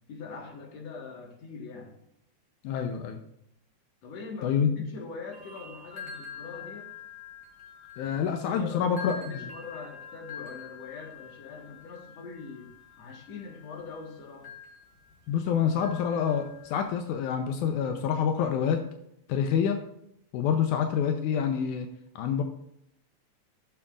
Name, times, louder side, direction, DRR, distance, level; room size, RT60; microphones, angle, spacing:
voice 1, 0.1-2.0 4.0-6.9 8.0-12.7 13.0-14.5, left 4 dB, 60° left, 1 dB, 2.7 m, -43 dB
voice 2, 2.6-3.2 4.4-4.9 8.0-9.1 15.3-18.8 19.3-19.8 20.3-21.9 22.2-22.4, left 7 dB, 85° left, 5 dB, 2.2 m, -27 dB
sound 1, 5.3-16.9, left 6 dB, 35° left, 2.4 m, -46 dB
13.5 x 7.1 x 2.5 m, 0.76 s
omnidirectional pair, 3.5 m